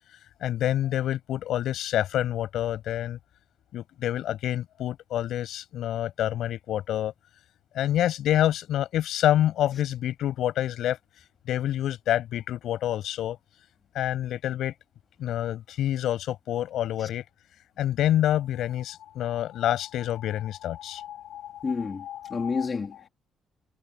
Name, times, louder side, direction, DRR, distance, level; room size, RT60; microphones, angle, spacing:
voice 1, 0.4-3.2 3.7-7.1 7.7-11.0 11.5-13.4 13.9-14.7 15.2-17.2 17.8-22.7, left 12 dB, 80° left, 6.5 m, -27 dB
voice 2, 21.6-22.0 22.3-23.1, left 4 dB, 35° left, 3.1 m, -29 dB
cardioid pair, 90°, 0 cm